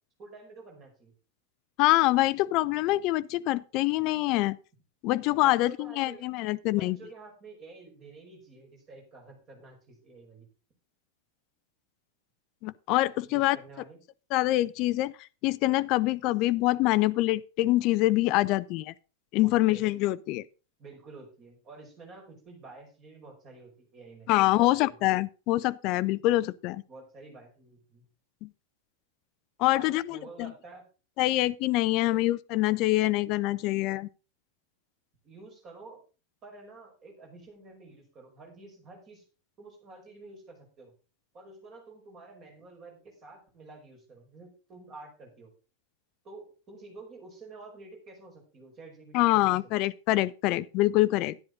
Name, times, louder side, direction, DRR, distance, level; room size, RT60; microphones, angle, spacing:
voice 1, 0.2-1.1 5.4-10.5 13.3-14.0 19.4-19.9 20.8-25.0 26.9-28.1 29.7-30.9 32.0-32.3 35.2-36.0 36.4-39.2 39.6-40.9 41.3-45.5 46.2-49.5, right 3 dB, 30° right, 5.2 m, -49 dB
voice 2, 1.8-4.6 5.0-7.0 12.6-13.6 14.3-15.1 15.4-18.9 19.3-20.4 24.3-26.8 28.4-28.5 29.6-30.5 31.2-34.1 49.1-51.4, left 17 dB, 40° left, 0.5 m, -25 dB
11.5 x 10.5 x 3.9 m
figure-of-eight pair, 90°, 0 cm